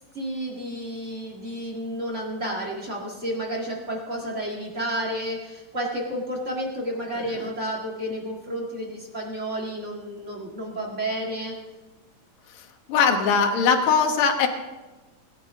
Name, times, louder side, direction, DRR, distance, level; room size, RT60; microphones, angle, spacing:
voice 1, 0.1-11.5, right 1 dB, 30° right, -2 dB, 1.5 m, -31 dB
voice 2, 12.9-14.5, left 6 dB, 60° left, 4 dB, 1.5 m, -20 dB
20.5 x 10.5 x 3.7 m, 1.2 s
omnidirectional pair, 4.2 m